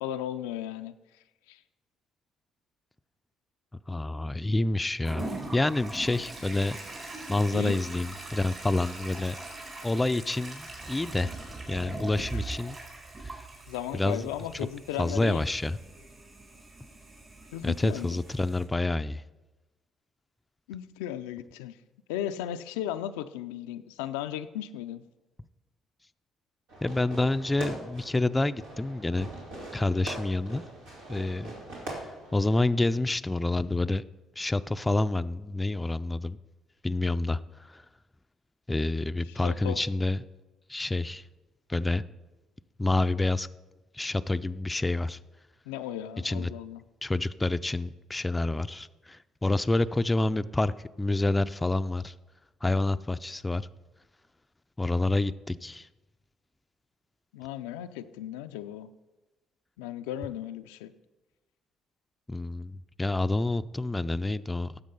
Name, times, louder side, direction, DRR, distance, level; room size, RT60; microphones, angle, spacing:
voice 1, 0.0-1.0 1.5-1.6 7.5-7.8 12.2-12.4 13.7-15.4 17.5-18.2 20.7-21.8 22.1-25.0 39.3-39.8 45.7-46.8 57.3-58.9 59.8-60.9, left 11 dB, 90° left, 9 dB, 0.4 m, -36 dB
voice 2, 3.9-5.3 5.5-6.8 7.3-9.4 9.8-11.3 11.7-12.8 13.2-13.5 13.9-14.3 15.0-15.8 17.6-19.2 26.8-29.3 29.7-30.6 31.1-31.5 32.3-34.0 34.4-36.4 36.8-37.4 37.7-37.8 38.7-40.2 40.7-41.2 41.7-42.0 42.8-43.5 43.9-45.2 46.2-46.5 47.0-52.1 52.6-53.7 54.8-55.9 62.3-64.8, left 2 dB, 15° left, 12 dB, 0.4 m, -28 dB
Toilet flush, 5.0-18.6, right 2 dB, 40° right, 3.8 m, -41 dB
Fireworks, 26.7-32.7, right 1 dB, 85° right, 2.9 m, -42 dB
10.5 x 7.2 x 5.4 m, 1.1 s
hypercardioid pair, 60°, 0 cm